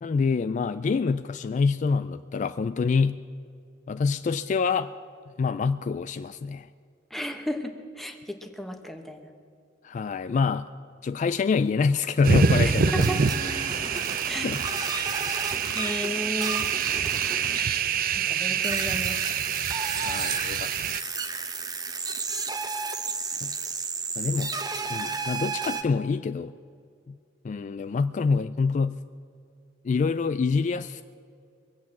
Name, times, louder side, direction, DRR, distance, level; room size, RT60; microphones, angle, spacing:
voice 1, 0.0-3.2 3.9-4.9 5.4-6.7 9.8-10.7 11.0-13.1 14.4-14.6 18.5-18.6 20.0-21.1 23.4-23.5 24.2-24.6 24.9-26.5 27.1-27.2 27.4-29.0 29.8-31.0, left 5 dB, 40° left, 12 dB, 0.3 m, -26 dB
voice 2, 7.1-9.3 12.6-13.2 14.3-14.5 15.7-16.7 18.3-19.2, left 1 dB, ahead, 4 dB, 1.1 m, -34 dB
sound 1, 12.2-21.0, right 6 dB, 50° right, 0.5 m, -26 dB
sound 2, 13.0-18.1 18.6-25.8, right 4 dB, 20° right, 0.9 m, -33 dB
22.5 x 8.3 x 7.2 m, 2.3 s
head